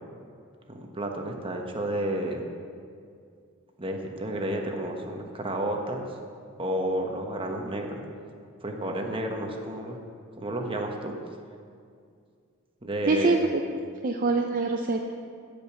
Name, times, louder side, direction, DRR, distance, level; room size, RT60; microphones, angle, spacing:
voice 1, 0.7-2.5 3.8-6.1 6.6-8.0 8.6-10.0 10.4-11.1 12.8-13.4, right 1 dB, 25° right, 2 dB, 1.2 m, -31 dB
voice 2, 13.1-13.6 14.0-15.1, right 3 dB, 40° right, 3 dB, 0.6 m, -25 dB
16.0 x 5.3 x 7.2 m, 2.3 s
head